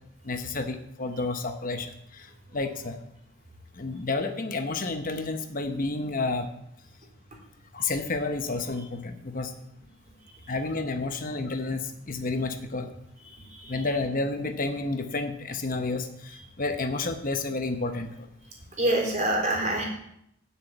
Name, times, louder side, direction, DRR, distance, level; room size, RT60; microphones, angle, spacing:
voice 1, 0.2-3.0 3.8-6.5 7.7-9.5 10.5-12.9 13.7-18.3, left 3 dB, 40° left, 7 dB, 0.9 m, -30 dB
voice 2, 13.4-13.8 18.8-19.8, right 1 dB, 35° right, -1 dB, 3.9 m, -26 dB
10.5 x 7.1 x 8.1 m, 0.76 s
head